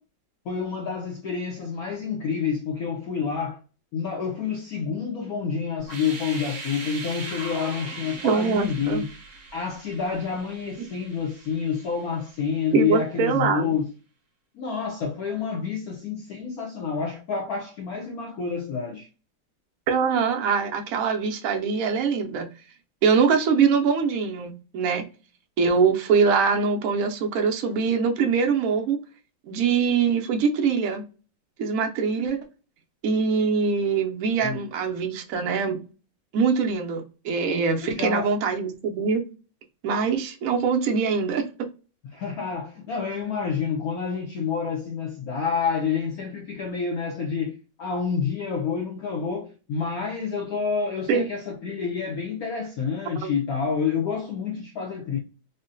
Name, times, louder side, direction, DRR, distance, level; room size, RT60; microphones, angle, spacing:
voice 1, 0.5-3.6 3.9-9.1 9.5-13.9 14.5-19.1 34.4-34.7 37.8-38.3 42.1-55.2, left 6 dB, 85° left, 0.8 m, -28 dB
sound 1, 5.8-12.7, right 3 dB, 45° right, 1.0 m, -40 dB
voice 2, 8.2-9.0 12.7-13.7 19.9-22.5 23.0-25.1 25.6-29.0 29.5-31.0 31.6-32.4 33.0-35.8 36.3-39.2 39.8-41.5 51.1-51.3 53.2-53.3, right 5 dB, 80° right, 0.7 m, -23 dB
3.7 x 2.1 x 2.5 m
omnidirectional pair, 2.3 m